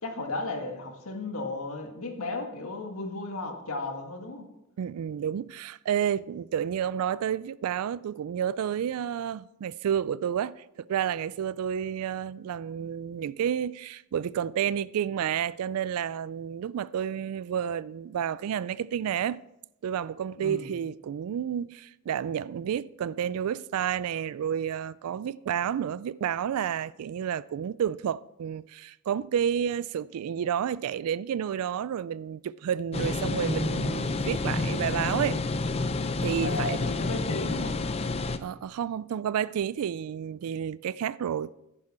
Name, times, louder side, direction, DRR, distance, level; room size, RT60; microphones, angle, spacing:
voice 1, 0.0-4.5 20.4-20.7 36.4-37.8, left 2 dB, 75° left, 1.8 m, -35 dB
voice 2, 4.8-19.4 19.8-35.4 36.2-37.0 38.4-41.5, right 9 dB, 80° right, 0.3 m, -30 dB
sound 1, 32.9-38.4, left 3 dB, 25° left, 0.5 m, -29 dB
11.0 x 9.8 x 4.3 m
head